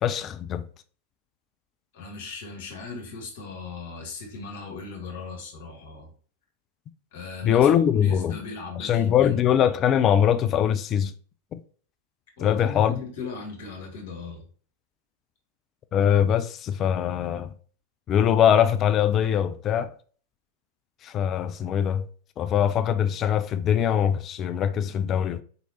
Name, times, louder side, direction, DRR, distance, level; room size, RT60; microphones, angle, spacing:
voice 1, 0.0-0.6 7.4-8.4 8.8-11.1 11.5-11.6 12.4-13.0 15.9-17.5 18.1-19.9 21.0-22.0 22.4-25.4, left 9 dB, 30° left, 0.3 m, -22 dB
voice 2, 1.9-6.1 7.1-9.4 12.4-14.4, left 4 dB, 55° left, 1.7 m, -38 dB
4.5 x 4.0 x 2.8 m
figure-of-eight pair, 90°, 0 cm